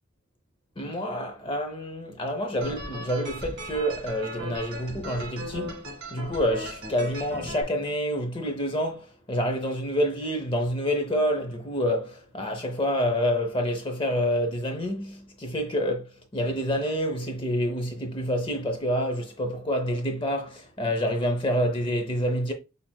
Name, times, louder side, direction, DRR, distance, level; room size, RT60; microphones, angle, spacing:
voice 1, 0.8-5.8 6.1-16.0 16.3-22.5, equal, 25° left, 0.7 m, -27 dB
sound 1, 2.6-7.6, equal, 50° right, 1.9 m, -37 dB
5.7 x 3.4 x 2.3 m
head